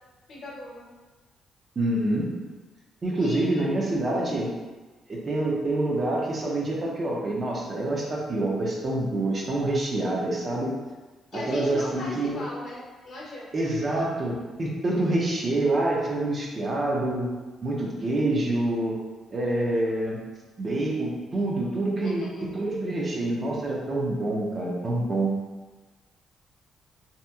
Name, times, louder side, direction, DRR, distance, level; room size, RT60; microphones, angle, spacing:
voice 1, 0.3-0.9 3.2-3.6 4.2-4.4 11.3-13.5 22.0-22.5, left 1 dB, 65° left, -5 dB, 0.8 m, -36 dB
voice 2, 1.8-2.3 3.0-4.5 5.1-10.7 11.3-12.4 13.5-17.3 17.6-19.0 19.3-20.2 20.6-22.2 22.5-25.3, right 2 dB, 40° right, -3 dB, 0.6 m, -26 dB
2.8 x 2.6 x 2.3 m, 1.3 s
cardioid pair, 90°, 0 cm